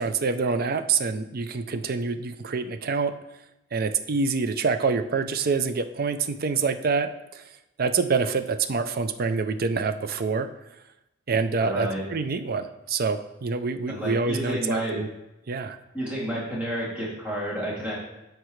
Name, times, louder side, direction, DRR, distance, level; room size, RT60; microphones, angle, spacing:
voice 1, 0.0-3.1 3.7-7.4 7.8-10.5 11.3-15.1 15.5-15.8, right 4 dB, 50° right, 9 dB, 0.5 m, -26 dB
voice 2, 11.6-12.0 13.9-15.0 15.9-18.0, equal, 5° right, -7 dB, 2.6 m, -30 dB
12.5 x 4.6 x 3.2 m, 0.93 s
head